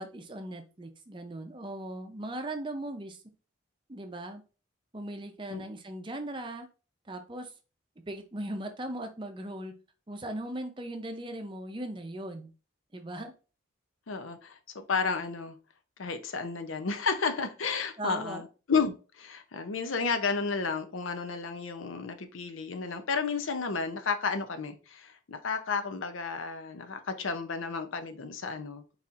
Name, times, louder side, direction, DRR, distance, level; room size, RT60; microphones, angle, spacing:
voice 1, 0.0-3.2 3.9-4.4 4.9-6.7 7.1-7.5 8.1-9.7 10.1-12.5 12.9-13.3 18.0-18.4, right 1 dB, 25° right, 0.5 m, -38 dB
voice 2, 14.1-15.6 16.0-28.8, left 5 dB, 80° left, 0.6 m, -32 dB
4.2 x 4.1 x 2.5 m
head